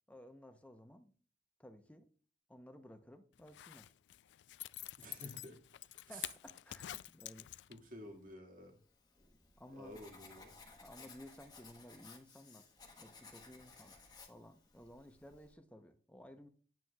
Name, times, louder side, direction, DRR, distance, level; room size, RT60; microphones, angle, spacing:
voice 1, 0.1-1.1 1.6-2.1 2.5-3.9 6.1-7.5 9.6-10.0 10.8-12.7 13.0-14.0 14.3-16.5, left 1 dB, 10° left, 0.7 m, -56 dB
Zipper (clothing), 3.4-8.0 8.3-8.4, left 15 dB, 85° left, 0.3 m, -48 dB
voice 2, 5.0-5.6 6.1-6.3 7.7-8.8 9.7-10.5, equal, 50° right, 2.0 m, -51 dB
Writing, 8.8-15.5, left 4 dB, 25° left, 1.3 m, -59 dB
9.0 x 8.9 x 2.3 m
head